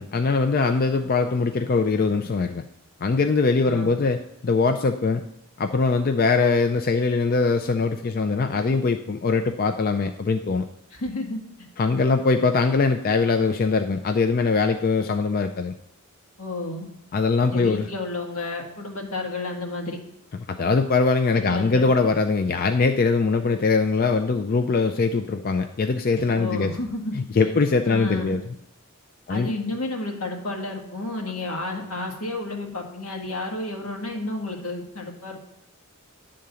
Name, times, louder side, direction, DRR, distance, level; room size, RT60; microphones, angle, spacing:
voice 1, 0.0-2.6 3.0-5.2 5.6-10.6 11.8-15.8 17.1-17.9 20.5-26.8 27.1-28.4 29.3-29.5, left 4 dB, 45° left, 7 dB, 0.4 m, -22 dB
voice 2, 3.6-3.9 10.9-11.4 16.4-16.8 17.5-20.0 21.3-21.8 26.3-27.1 27.4-27.5 27.8-28.3 29.3-35.4, left 2 dB, 80° left, 1 dB, 1.6 m, -31 dB
10.5 x 3.8 x 6.9 m, 0.80 s
head